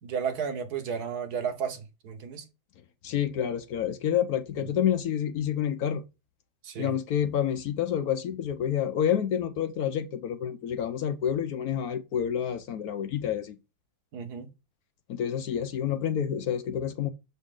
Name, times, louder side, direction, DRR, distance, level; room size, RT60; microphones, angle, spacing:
voice 1, 0.0-2.4 6.6-6.9 14.1-14.5, right 7 dB, 55° right, 1.4 m, -33 dB
voice 2, 3.0-6.0 6.8-13.6 15.1-17.1, left 9 dB, 70° left, 0.9 m, -28 dB
7.3 x 4.1 x 3.6 m
omnidirectional pair, 2.3 m